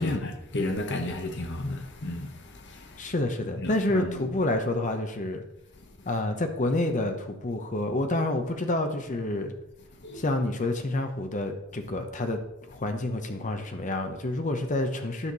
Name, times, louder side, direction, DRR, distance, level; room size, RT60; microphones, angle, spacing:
voice 1, 0.0-2.3 2.7-3.0 3.6-4.1 10.0-10.2, left 2 dB, 55° left, 1.1 m, -33 dB
voice 2, 3.0-5.4 6.0-9.5 10.1-12.4 12.7-15.3, left 2 dB, 35° left, 0.8 m, -28 dB
10.0 x 6.5 x 4.0 m
head